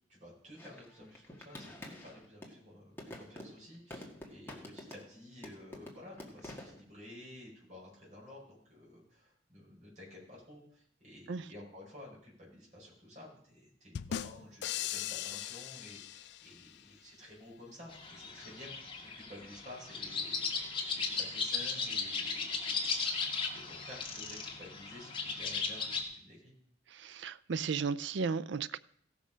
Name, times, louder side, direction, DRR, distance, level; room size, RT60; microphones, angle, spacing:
voice 1, 0.1-18.7 19.0-26.5, left 1 dB, 40° right, 5.5 m, -52 dB
sound 1, 0.6-2.6 3.0-5.2 5.4-6.8, left 1 dB, 10° left, 1.8 m, -48 dB
sound 2, 13.9-16.8, left 10 dB, 60° left, 0.4 m, -39 dB
sound 3, 17.9-26.0, left 4 dB, 30° left, 1.8 m, -36 dB
voice 2, 26.9-28.8, right 5 dB, 65° right, 0.5 m, -35 dB
16.5 x 6.3 x 5.1 m
head